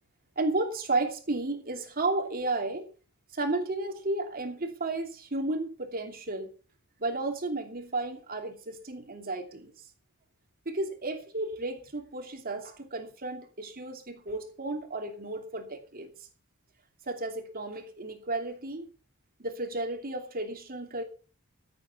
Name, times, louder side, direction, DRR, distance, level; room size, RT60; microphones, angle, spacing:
voice 1, 0.4-2.8 3.3-6.5 7.0-9.9 10.6-16.1 17.0-18.9 19.4-21.0, right 2 dB, 45° right, 4 dB, 2.7 m, -33 dB
15.0 x 8.4 x 5.9 m, 0.38 s
head